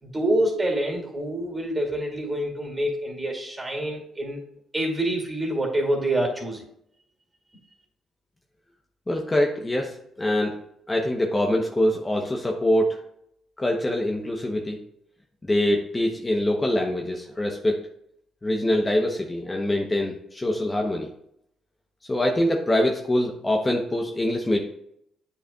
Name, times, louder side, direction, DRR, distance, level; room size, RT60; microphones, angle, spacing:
voice 1, 0.0-4.4 4.7-6.6, right 1 dB, 20° right, 1 dB, 2.5 m, -26 dB
voice 2, 9.1-10.5 10.9-13.0 13.6-14.8 15.4-17.8 18.4-21.1 22.1-24.6, left 1 dB, 20° left, 1 dB, 0.9 m, -24 dB
8.7 x 5.6 x 2.3 m, 0.73 s
cardioid pair, 90°, 0 cm